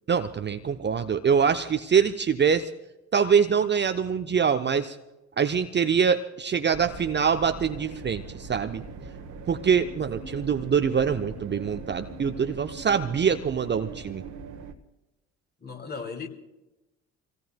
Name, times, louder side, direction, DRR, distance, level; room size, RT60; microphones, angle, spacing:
voice 1, 0.1-2.7 3.1-5.0 5.4-8.8 9.5-14.2, right 7 dB, 30° right, 0.7 m, -24 dB
sound 1, 6.7-14.7, right 4 dB, 55° right, 1.4 m, -40 dB
voice 2, 15.6-16.3, left 5 dB, 25° left, 2.6 m, -36 dB
27.0 x 17.5 x 2.3 m
figure-of-eight pair, 50°, 37 cm